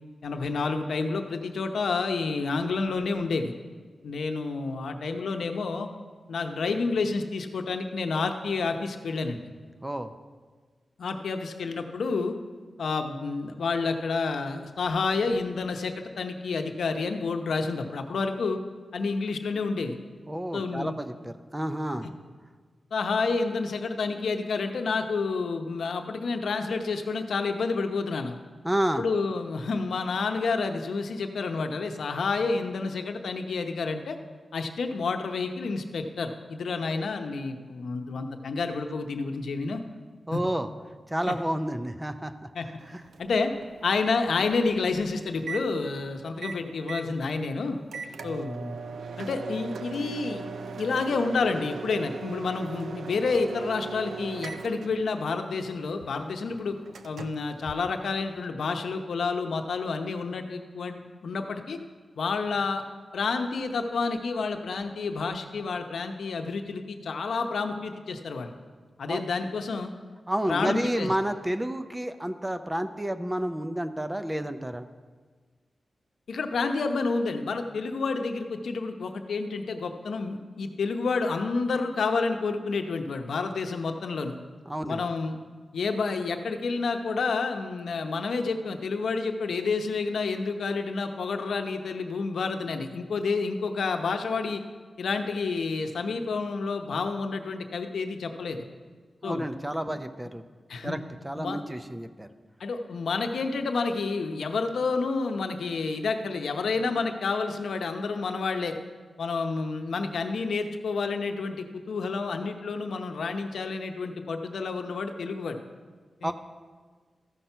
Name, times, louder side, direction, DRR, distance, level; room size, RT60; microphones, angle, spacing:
voice 1, 0.2-3.5 4.0-5.9 6.3-9.4 11.0-12.3 12.8-18.6 18.9-20.0 20.5-21.0 22.9-28.4 29.0-34.2 34.5-39.8 40.3-40.4 41.3-41.4 42.5-42.7 43.2-43.5 43.8-47.8 48.2-48.8 49.2-50.4 50.8-56.8 57.0-61.8 62.2-62.8 63.1-68.5 69.0-69.9 70.5-71.1 76.3-84.4 84.8-85.4 85.7-94.6 95.0-98.7 99.2-99.4 99.9-100.0 100.7-101.0 101.4-101.6 102.6-108.7 109.2-115.6 116.2-116.3, left 4 dB, 80° left, 6 dB, 0.8 m, -29 dB
voice 2, 9.8-10.1 20.3-22.1 28.6-29.0 40.3-40.7 41.1-42.3 42.9-43.0 69.1-69.2 70.3-74.9 84.7-85.1 99.2-100.4 100.8-102.3 116.2-116.3, right 1 dB, 10° right, 9 dB, 0.5 m, -30 dB
Microwave oven, 42.8-58.5, right 5 dB, 85° right, 0.5 m, -40 dB
14.0 x 5.9 x 5.5 m, 1.5 s
wide cardioid pair, 130°, 0 cm